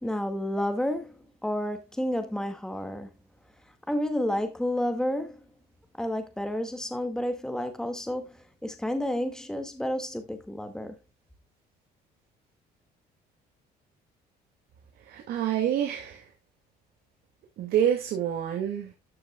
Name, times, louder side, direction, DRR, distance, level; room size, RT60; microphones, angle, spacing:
voice 1, 0.0-3.1 3.9-5.4 6.0-11.0, left 1 dB, 5° left, 1.9 m, -30 dB
voice 2, 15.1-16.2 17.6-18.9, right 10 dB, 70° right, 2.2 m, -27 dB
13.5 x 6.5 x 2.3 m
cardioid pair, 110°, 17 cm